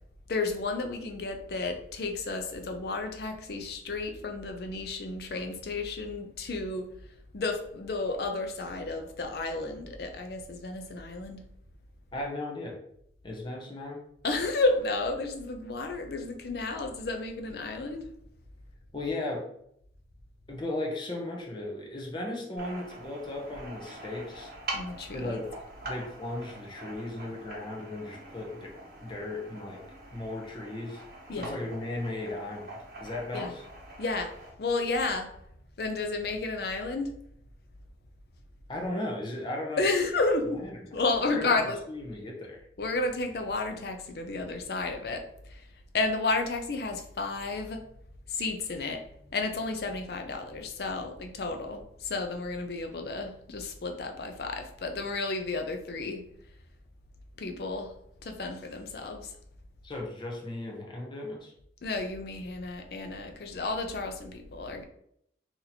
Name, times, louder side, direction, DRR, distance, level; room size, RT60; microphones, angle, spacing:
voice 1, 0.3-6.9 7.3-11.4 14.2-18.1 24.7-25.4 31.3-31.6 33.3-33.5 34.0-35.3 35.8-37.1 39.8-40.6 40.9-41.8 42.8-45.6 45.9-47.9 48.3-56.2 57.4-57.9 58.2-59.3 61.8-64.8, left 3 dB, 60° left, 5 dB, 0.5 m, -32 dB
voice 2, 12.1-12.8 13.2-14.0 18.9-19.4 20.5-24.5 25.1-25.5 25.8-28.7 29.0-29.8 30.1-31.0 31.3-32.7 33.0-33.6 38.7-39.8 40.5-40.7 41.3-41.6 41.9-42.6 59.8-61.5, left 2 dB, 25° left, -1 dB, 0.7 m, -36 dB
sound 1, 22.6-34.5, right 2 dB, 55° right, 1.1 m, -44 dB
2.9 x 2.7 x 4.0 m, 0.72 s
head